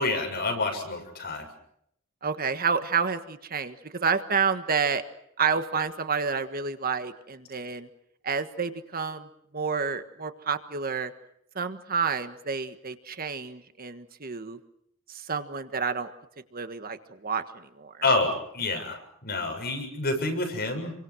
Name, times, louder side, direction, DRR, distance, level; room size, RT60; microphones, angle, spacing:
voice 1, 0.0-1.5 18.0-20.9, left 2 dB, 50° left, 5 dB, 7.3 m, -28 dB
voice 2, 2.2-5.0 5.4-7.9 8.2-9.3 9.5-11.1 11.5-14.6 15.1-16.1 16.5-17.9, right 5 dB, 45° right, 9 dB, 1.6 m, -29 dB
29.5 x 24.0 x 6.3 m, 0.73 s
head